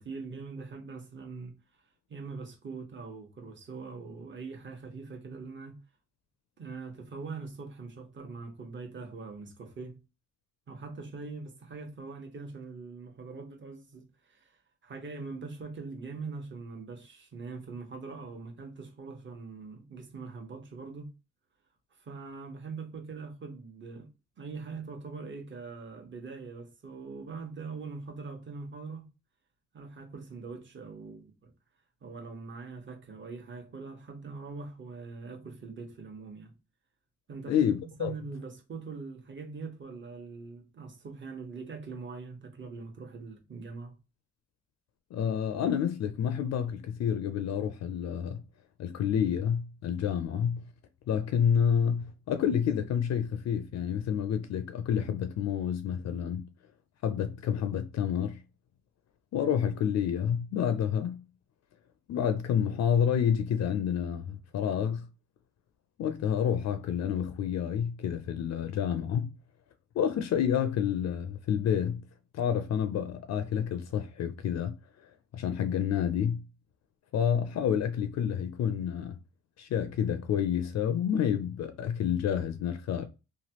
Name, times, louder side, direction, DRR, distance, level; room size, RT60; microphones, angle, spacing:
voice 1, 0.0-1.6 2.1-5.8 6.6-10.0 10.7-21.1 22.0-24.1 24.4-29.1 29.7-31.5 32.0-36.5 37.3-43.9, right 4 dB, 40° right, 1.1 m, -42 dB
voice 2, 37.5-38.1 45.1-48.4 48.8-50.6 51.1-56.5 57.0-58.4 59.3-61.2 62.1-65.1 66.0-69.3 69.9-72.0 72.3-74.7 75.3-76.4 77.1-79.2 79.6-83.1, left 8 dB, 60° left, 0.5 m, -29 dB
3.1 x 2.3 x 2.9 m
cardioid pair, 90°, 30 cm